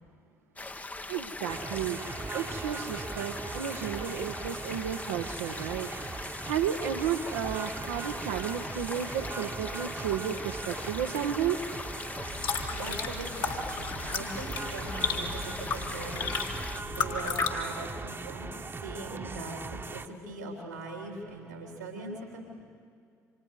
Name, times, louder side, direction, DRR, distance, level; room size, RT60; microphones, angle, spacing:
sound 1, 0.6-16.8, left 2 dB, 20° left, 0.7 m, -41 dB
voice 1, 0.8-2.0 2.3-5.9 6.2-11.6 19.1-19.3, right 9 dB, 75° right, 4 dB, 0.8 m, -33 dB
sound 2, 1.5-20.1, right 3 dB, 25° right, 1.1 m, -40 dB
sound 3, 12.2-17.5, left 5 dB, 60° left, 1.9 m, -34 dB
voice 2, 12.7-22.5, right 2 dB, 90° right, 1 dB, 3.2 m, -41 dB
28.5 x 26.0 x 4.8 m, 2.3 s
figure-of-eight pair, 50°, 9 cm